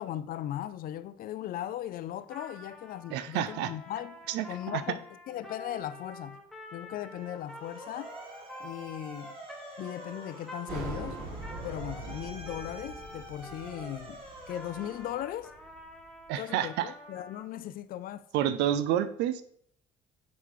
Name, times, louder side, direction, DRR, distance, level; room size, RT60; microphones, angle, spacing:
voice 1, 0.0-6.4 6.7-8.1 8.6-9.4 9.8-11.2 11.6-15.5 16.4-18.3, left 12 dB, 60° left, 0.4 m, -38 dB
Trumpet, 2.2-14.0 14.5-17.5, equal, ahead, 0.9 m, -48 dB
voice 2, 3.1-3.7 4.3-4.8 16.3-16.9 18.3-19.4, right 11 dB, 85° right, 0.4 m, -29 dB
Motor vehicle (road) / Siren, 7.1-15.7, right 2 dB, 30° right, 1.8 m, -48 dB
sound 1, 10.7-16.0, right 2 dB, 65° right, 2.8 m, -42 dB
9.2 x 3.2 x 3.7 m
cardioid pair, 110°, 17 cm